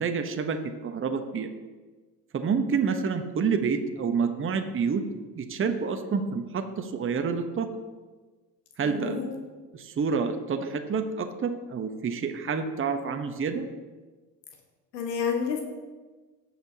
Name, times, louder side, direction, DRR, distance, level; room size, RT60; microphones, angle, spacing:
voice 1, 0.0-1.5 2.3-5.0 5.3-7.7 8.8-9.2 9.7-13.7, right 5 dB, 25° right, 6 dB, 1.0 m, -28 dB
voice 2, 8.8-9.3 14.9-15.6, left 6 dB, 80° left, 1 dB, 1.5 m, -29 dB
17.5 x 6.0 x 2.8 m, 1.3 s
hypercardioid pair, 65°, 49 cm